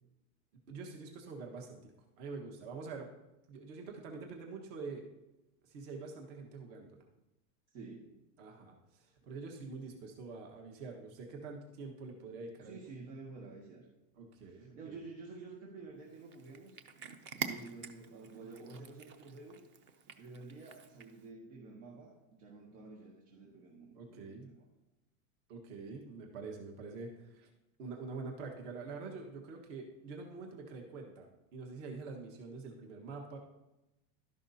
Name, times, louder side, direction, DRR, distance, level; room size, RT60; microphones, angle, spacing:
voice 1, 0.7-1.9 2.2-3.1 3.5-5.0 5.6-7.0 8.4-12.8 14.2-15.0 23.9-24.5 25.5-27.5 27.8-33.4, right 4 dB, 55° right, 2 dB, 1.5 m, -46 dB
voice 2, 7.7-8.1 9.7-10.0 12.6-13.9 14.4-16.8 17.3-19.6 20.2-24.7, right 3 dB, 85° right, -1 dB, 1.8 m, -50 dB
Cat, 16.1-21.3, right 6 dB, 30° right, 0.5 m, -46 dB
12.0 x 11.0 x 2.8 m, 0.97 s
supercardioid pair, 155°, 41 cm